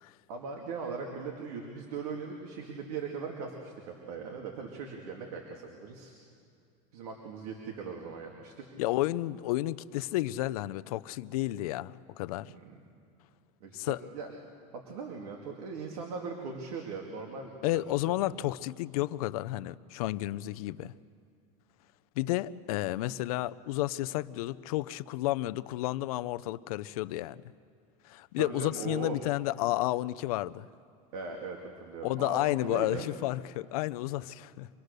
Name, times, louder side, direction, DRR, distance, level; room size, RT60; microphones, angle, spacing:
voice 1, 0.3-6.1 6.9-8.5 12.4-12.8 13.6-14.3 14.9-18.2 28.4-29.1 31.1-33.1, right 5 dB, 80° right, 1 dB, 2.4 m, -39 dB
voice 2, 8.8-12.5 13.7-14.0 17.6-20.9 22.2-27.4 28.0-30.7 32.0-34.7, left 16 dB, 75° left, 15 dB, 0.5 m, -31 dB
26.0 x 20.0 x 6.7 m, 2.4 s
supercardioid pair, 175°, 19 cm